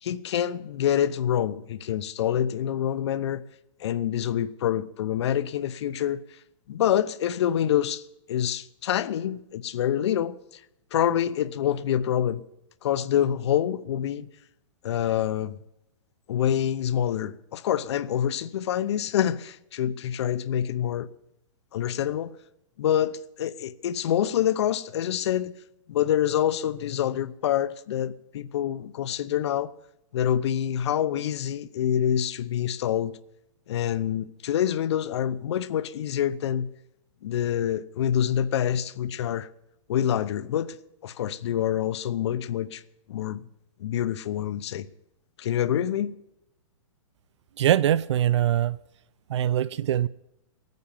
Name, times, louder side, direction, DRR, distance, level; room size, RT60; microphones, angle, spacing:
voice 1, 0.0-3.4 3.8-6.2 6.7-10.4 10.9-12.4 12.8-14.3 14.8-15.6 16.3-21.1 21.7-22.3 22.8-25.5 25.9-29.7 30.1-33.1 33.7-36.7 37.2-39.5 39.9-40.8 41.0-42.8 43.1-43.4 43.8-44.9 45.4-46.1, left 10 dB, 55° left, 0.8 m, -26 dB
voice 2, 47.6-48.8 49.3-50.1, right 11 dB, 60° right, 0.5 m, -22 dB
16.5 x 9.5 x 7.1 m
hypercardioid pair, 165°, 17 cm